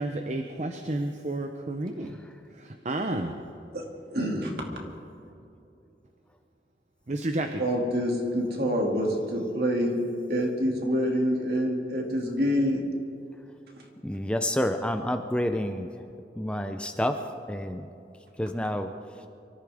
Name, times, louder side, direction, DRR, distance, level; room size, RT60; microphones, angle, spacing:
voice 1, 0.0-2.1 2.8-3.3 7.1-7.5, right 2 dB, 40° right, 5 dB, 0.7 m, -30 dB
voice 2, 4.1-4.6 7.6-10.0 10.3-12.8, equal, 60° right, 0 dB, 2.5 m, -26 dB
voice 3, 14.0-15.9 16.4-17.2 17.5-17.9 18.4-18.9, left 1 dB, 5° left, 7 dB, 0.5 m, -28 dB
24.5 x 14.0 x 3.6 m, 2.8 s
head